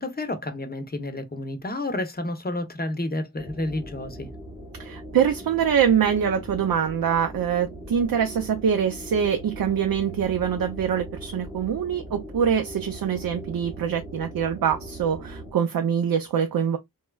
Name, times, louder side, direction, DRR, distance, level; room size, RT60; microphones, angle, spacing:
voice 1, 0.0-4.3, left 1 dB, 25° left, 0.7 m, -30 dB
sound 1, 3.4-15.5, right 1 dB, 5° right, 0.7 m, -40 dB
voice 2, 4.8-16.8, right 8 dB, 60° right, 0.5 m, -24 dB
3.1 x 2.3 x 2.2 m
cardioid pair, 60°, 40 cm